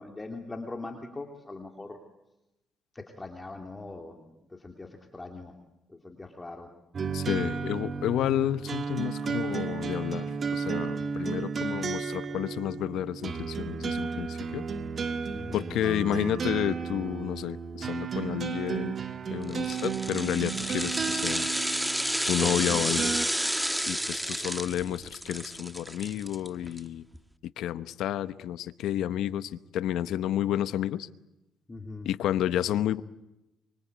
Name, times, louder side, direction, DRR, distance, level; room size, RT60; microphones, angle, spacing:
voice 1, 0.0-2.0 2.9-4.3 4.5-5.5 5.9-6.7 15.3-15.7 31.7-32.1, left 2 dB, 20° left, 3 dB, 3.0 m, -41 dB
sound 1, 6.9-23.3, right 5 dB, 45° right, 1.8 m, -33 dB
voice 2, 7.1-14.6 15.5-19.0 19.3-21.5 22.3-23.1 23.9-27.0 27.6-31.1 32.0-33.0, left 11 dB, 85° left, 14 dB, 0.9 m, -31 dB
sound 2, 19.5-26.8 27.1-27.2, equal, 5° right, 1.4 m, -31 dB
25.0 x 24.5 x 8.2 m, 0.92 s
cardioid pair, 90°, 0 cm